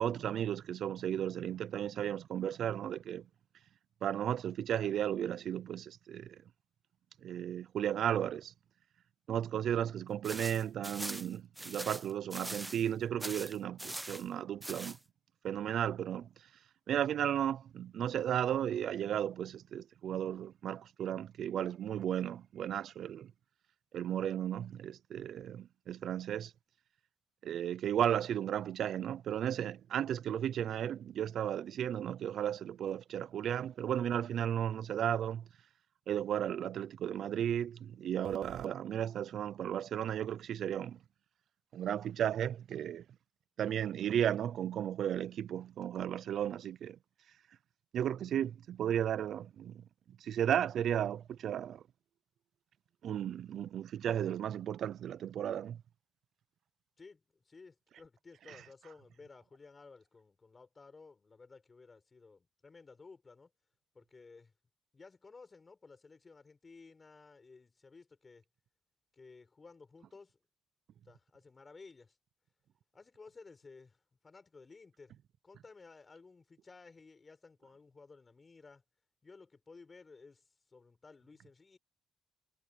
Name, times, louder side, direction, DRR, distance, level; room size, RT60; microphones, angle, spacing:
voice 1, 0.0-3.2 4.0-6.4 7.2-8.5 9.3-15.0 15.4-16.3 16.9-23.3 23.9-26.5 27.4-35.4 36.1-41.0 41.7-43.0 43.6-47.0 47.9-49.8 50.2-51.8 53.0-55.8 58.5-58.6, right 10 dB, 65° right, 0.6 m, -34 dB
sound 1, 10.2-12.9 13.2-14.2 14.6-15.0, right 1 dB, 10° right, 1.0 m, -42 dB
voice 2, 57.0-63.5 63.9-64.5 64.9-68.4 69.1-70.4 71.0-72.2 72.9-75.2 75.4-78.8 79.2-81.8, left 4 dB, 30° left, 7.1 m, -56 dB
cardioid pair, 90°, 0 cm